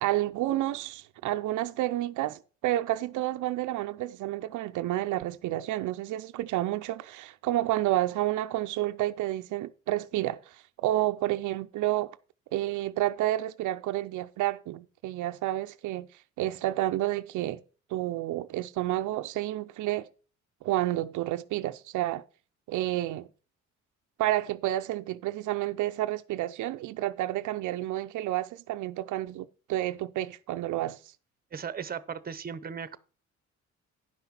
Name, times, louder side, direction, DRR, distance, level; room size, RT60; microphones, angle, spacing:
voice 1, 0.0-12.2 12.5-16.1 16.4-17.6 17.9-20.1 20.6-22.2 22.7-23.3 24.2-31.0, right 15 dB, 80° right, 0.5 m, -30 dB
voice 2, 31.5-33.0, right 7 dB, 30° right, 0.8 m, -37 dB
10.5 x 5.8 x 5.8 m
cardioid pair, 90°, 30 cm